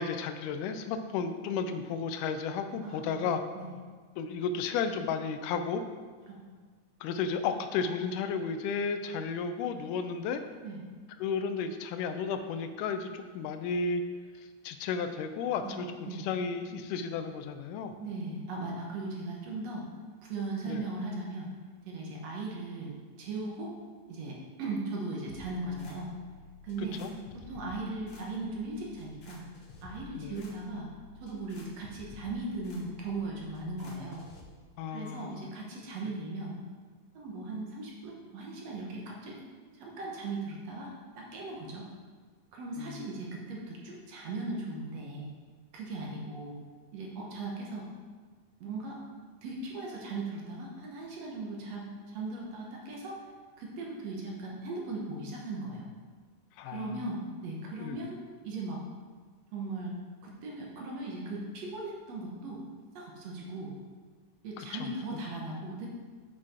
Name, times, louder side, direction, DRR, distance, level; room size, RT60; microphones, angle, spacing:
voice 1, 0.0-3.4 4.2-5.8 7.0-10.4 11.2-14.0 14.6-17.9 20.7-20.8 27.0-27.1 30.2-30.5 34.8-35.5 42.8-43.0 56.6-56.9 57.8-58.0 64.6-64.9, left 5 dB, 80° left, 8 dB, 2.0 m, -33 dB
voice 2, 2.8-3.7 6.3-6.5 10.6-10.8 15.6-15.8 16.1-16.3 18.0-19.9 20.2-21.5 21.9-23.8 24.1-26.1 26.6-27.0 27.3-29.4 29.8-30.9 31.2-34.2 34.9-36.6 37.1-39.4 39.7-41.9 42.5-45.3 45.7-46.6 46.9-47.9 48.6-49.0 49.4-53.2 53.6-55.9 56.7-58.2 58.4-58.8 59.5-59.9 60.2-62.6 63.0-63.7 64.4-65.9, right 2 dB, 65° right, -2 dB, 1.9 m, -38 dB
sound 1, 25.3-34.4, left 4 dB, 60° left, 1.6 m, -52 dB
7.4 x 6.3 x 4.2 m, 1.5 s
omnidirectional pair, 3.9 m